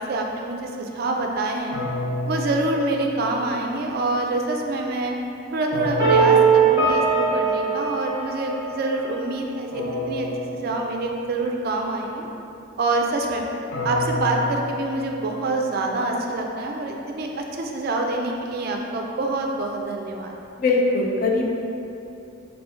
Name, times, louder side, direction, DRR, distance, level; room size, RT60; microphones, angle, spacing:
voice 1, 0.0-1.7 2.2-5.1 5.5-7.0 7.3-12.3 12.8-13.4 13.8-20.3, right 2 dB, 50° right, 1 dB, 0.3 m, -26 dB
sound 1, 1.7-3.8 5.7-7.6 9.7-11.6 13.7-15.9, left 1 dB, 75° left, 0.7 m, -31 dB
sound 2, 6.0-8.9, right 5 dB, 15° right, 1.3 m, -19 dB
voice 2, 20.6-21.5, left 3 dB, 45° left, -1 dB, 0.4 m, -21 dB
3.3 x 2.6 x 4.4 m, 2.8 s
head